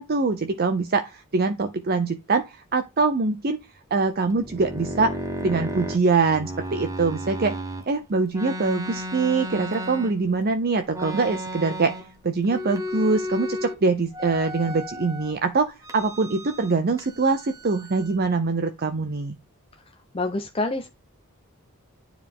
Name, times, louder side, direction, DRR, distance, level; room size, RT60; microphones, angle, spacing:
voice 1, 0.0-3.6 3.9-7.5 7.9-11.9 12.2-19.4, right 4 dB, 45° right, 0.6 m, -24 dB
sound 1, 4.3-7.8 8.3-10.4 10.9-12.2 12.4-13.8 14.1-15.3 15.8-16.7 17.0-18.2, equal, 15° right, 1.1 m, -34 dB
voice 2, 20.1-20.9, left 2 dB, 25° left, 0.7 m, -26 dB
9.7 x 4.8 x 3.6 m
head